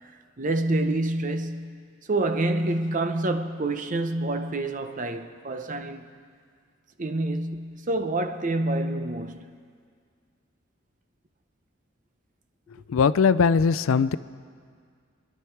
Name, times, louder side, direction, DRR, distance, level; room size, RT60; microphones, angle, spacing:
voice 1, 0.4-6.1 7.0-9.5, right 2 dB, 40° right, 0.7 m, -27 dB
voice 2, 12.9-14.2, left 5 dB, 90° left, 0.4 m, -20 dB
24.5 x 11.0 x 4.6 m
head